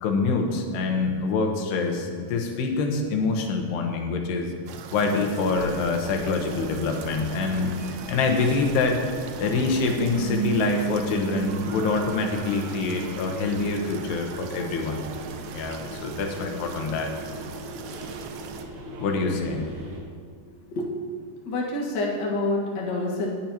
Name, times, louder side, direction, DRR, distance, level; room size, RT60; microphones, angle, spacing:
voice 1, 0.0-4.5 4.9-7.7 8.1-9.0 9.4-15.1 15.5-17.1 19.0-19.7, left 4 dB, 80° left, 3 dB, 3.1 m, -25 dB
sound 1, 4.7-18.6, right 6 dB, 80° right, 2.8 m, -41 dB
sound 2, 5.4-20.0, right 1 dB, 60° right, 2.3 m, -39 dB
sound 3, 10.1-13.5, right 5 dB, 30° right, 3.7 m, -32 dB
voice 2, 20.7-21.2 21.4-23.3, left 2 dB, 60° left, -3 dB, 1.2 m, -27 dB
19.0 x 8.7 x 2.9 m, 2.2 s
omnidirectional pair, 4.8 m